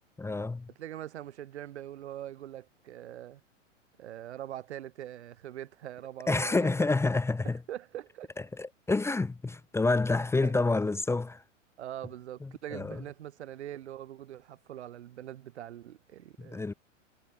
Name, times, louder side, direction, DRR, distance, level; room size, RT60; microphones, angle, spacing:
voice 1, 0.2-0.7 6.3-7.6 8.5-11.4 12.4-13.0 16.4-16.7, left 3 dB, 5° left, 1.4 m, -28 dB
voice 2, 0.8-3.4 4.0-6.7 7.7-8.3 10.4-10.6 11.8-16.7, right 12 dB, 60° right, 2.1 m, -42 dB
figure-of-eight pair, 100°, 38 cm